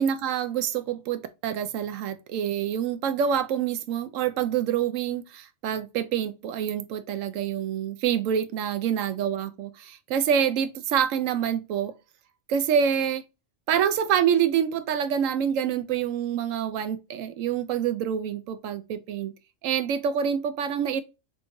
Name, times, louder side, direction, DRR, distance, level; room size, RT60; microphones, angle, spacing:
voice 1, 0.0-11.9 12.5-13.2 13.7-19.3 19.6-21.0, right 8 dB, 85° right, 1.0 m, -26 dB
3.4 x 3.1 x 2.5 m
omnidirectional pair, 1.3 m